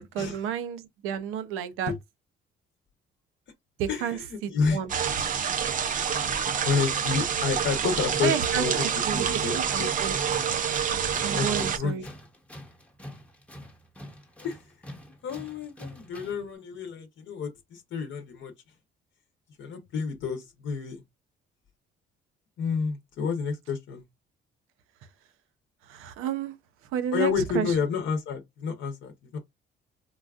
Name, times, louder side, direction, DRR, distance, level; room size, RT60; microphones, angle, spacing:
voice 1, 0.0-1.9 3.8-4.9 8.2-10.1 11.2-12.1 25.9-26.6 26.9-27.7, right 8 dB, 90° right, 0.6 m, -31 dB
voice 2, 3.9-4.8 6.6-8.9 9.1-9.9 11.3-12.1 14.4-14.7 15.2-18.5 19.6-21.0 22.6-24.0 27.1-29.4, left 5 dB, 65° left, 0.8 m, -30 dB
sound 1, 4.9-11.8, right 7 dB, 40° right, 0.5 m, -27 dB
Tools, 9.9-16.5, left 1 dB, 5° left, 0.7 m, -46 dB
3.9 x 2.3 x 2.3 m
cardioid pair, 100°, 21 cm